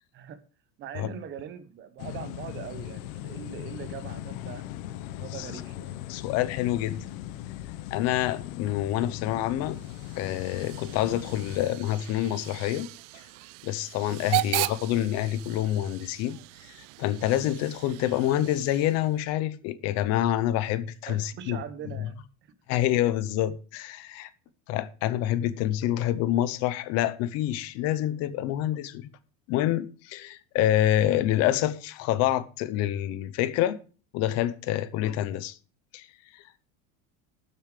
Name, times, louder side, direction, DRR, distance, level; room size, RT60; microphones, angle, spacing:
voice 1, 0.8-6.0 14.3-14.5 21.1-22.2 22.4-22.5, right 8 dB, 30° right, 1.0 m, -42 dB
sound 1, 2.0-11.6, left 14 dB, 85° left, 0.9 m, -39 dB
voice 2, 6.1-7.0 7.9-9.8 10.2-12.9 13.6-16.4 17.0-21.6 22.7-24.3 24.7-29.1 29.5-33.8 34.1-35.6 35.9-36.1 36.3-36.4, left 13 dB, 40° left, 0.8 m, -27 dB
Hiss / Train / Alarm, 9.6-19.2, right 22 dB, 65° right, 0.5 m, -37 dB
12.5 x 7.2 x 4.9 m
cardioid pair, 175°, 40 cm